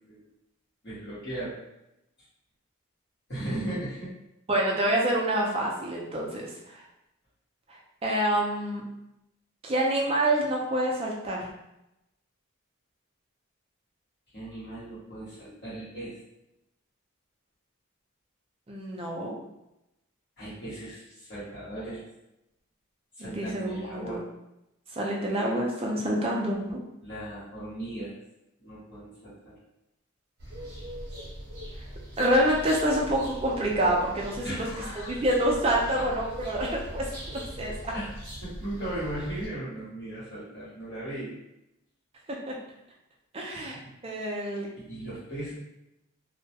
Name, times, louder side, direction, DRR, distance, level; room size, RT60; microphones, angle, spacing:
voice 1, 0.8-1.6 3.3-4.1 14.3-16.2 20.4-22.0 23.2-24.2 27.0-28.1 28.6-29.6 34.4-35.2 35.9-36.3 37.9-38.1 38.4-41.3 43.5-43.8 44.9-45.5, right 1 dB, 50° left, -13 dB, 1.0 m, -37 dB
voice 2, 4.5-6.8 7.7-8.8 9.6-11.5 18.7-19.4 23.2-24.2 24.9-26.8 32.2-34.7 35.1-37.9 42.3-42.5 43.3-43.8 44.0-44.7, right 1 dB, 25° right, -2 dB, 0.4 m, -27 dB
sound 1, 30.4-39.5, equal, 50° right, 0.8 m, -41 dB
2.2 x 2.1 x 2.7 m, 0.88 s
head